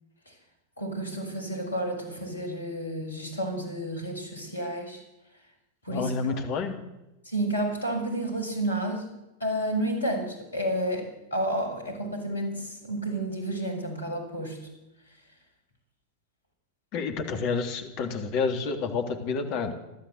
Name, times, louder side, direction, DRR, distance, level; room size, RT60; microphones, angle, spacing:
voice 1, 0.8-5.0 5.8-6.1 7.2-9.1 9.4-14.6, right 1 dB, 75° left, 5 dB, 6.5 m, -31 dB
voice 2, 5.9-6.8 16.9-19.7, left 5 dB, 45° left, 5 dB, 3.3 m, -29 dB
29.5 x 13.0 x 8.1 m, 0.96 s
figure-of-eight pair, 90°, 0 cm